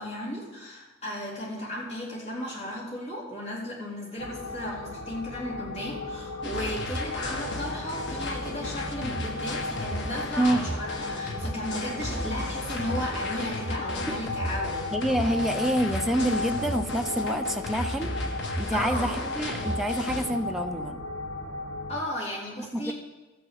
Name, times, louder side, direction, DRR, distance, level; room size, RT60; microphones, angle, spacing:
voice 1, 0.0-14.9 18.7-19.2 21.9-22.9, left 1 dB, 35° left, -5 dB, 3.6 m, -35 dB
sound 1, 4.2-21.9, left 2 dB, 90° left, 2.8 m, -35 dB
sound 2, 6.4-20.3, left 1 dB, 60° left, 1.6 m, -34 dB
voice 2, 14.9-18.1 18.6-21.0 22.6-22.9, right 1 dB, ahead, 5 dB, 0.7 m, -27 dB
13.0 x 6.4 x 7.6 m, 1.2 s
head